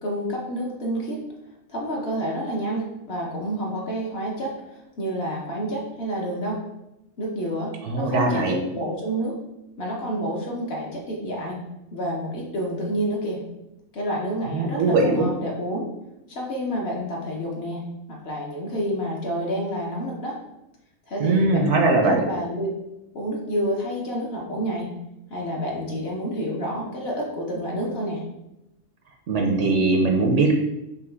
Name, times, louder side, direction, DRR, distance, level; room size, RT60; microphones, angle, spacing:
voice 1, 0.0-1.2 1.7-4.5 5.0-6.6 7.2-9.4 9.8-11.6 11.9-13.4 13.9-15.9 16.3-17.8 18.1-20.4 21.1-22.8 23.1-24.9 25.3-28.2, equal, 55° left, -2 dB, 0.9 m, -29 dB
voice 2, 7.8-8.6 14.5-15.3 21.2-22.2 29.3-30.5, right 3 dB, 65° right, 3 dB, 0.8 m, -20 dB
5.4 x 2.2 x 3.3 m, 0.91 s
omnidirectional pair, 1.4 m